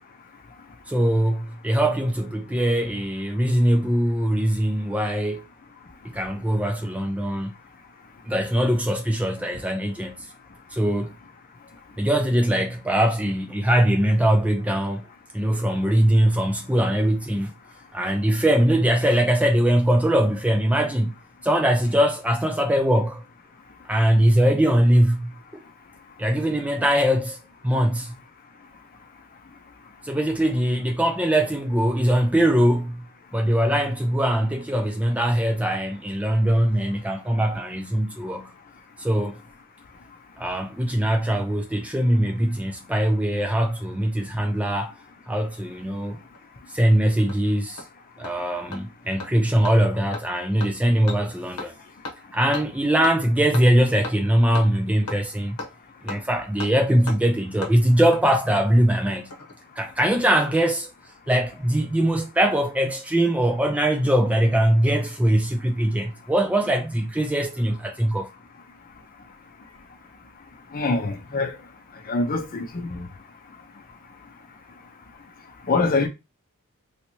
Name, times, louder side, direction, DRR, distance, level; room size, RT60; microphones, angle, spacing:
voice 1, 0.9-5.4 6.0-7.5 8.3-10.3 10.7-11.1 12.0-15.0 15.3-17.5 17.9-21.1 21.4-23.2 23.9-25.6 26.2-27.4 27.6-28.1 30.0-33.1 33.3-38.5 39.0-39.4 40.4-44.9 45.3-46.2 46.7-47.8 48.2-51.7 52.3-55.6 56.0-59.3 59.8-60.9 61.3-68.3, right 1 dB, 5° right, 0.3 m, -21 dB
Hammer, 46.3-46.4 46.8-46.9 47.3-47.4 47.8-47.9 48.2-48.3 48.7-48.8 49.2-49.3 49.6-49.7 50.1-50.2 50.6-50.7 51.1-51.2 51.6-51.7 52.0-52.1 52.5-52.6 53.0-53.1 53.5-53.6 54.0-54.1 54.5-54.7 55.1-55.2 55.6-55.7 56.1-56.2 56.6-56.7 57.1-57.2 57.6-57.7 58.1-58.2 59.1-59.5 59.8-59.9, left 2 dB, 75° left, 0.9 m, -34 dB
voice 2, 70.7-71.6 72.1-73.1 75.7-76.1, left 3 dB, 40° left, 0.6 m, -24 dB
3.2 x 2.8 x 2.9 m
head